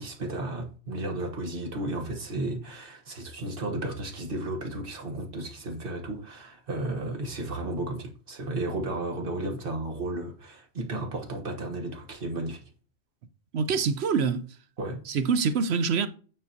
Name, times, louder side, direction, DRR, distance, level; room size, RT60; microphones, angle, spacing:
voice 1, 0.0-12.6 14.8-15.1, right 2 dB, 55° right, 1.5 m, -33 dB
voice 2, 13.5-14.4 15.1-16.1, right 5 dB, 70° right, 0.9 m, -25 dB
8.9 x 4.7 x 2.7 m
omnidirectional pair, 1.1 m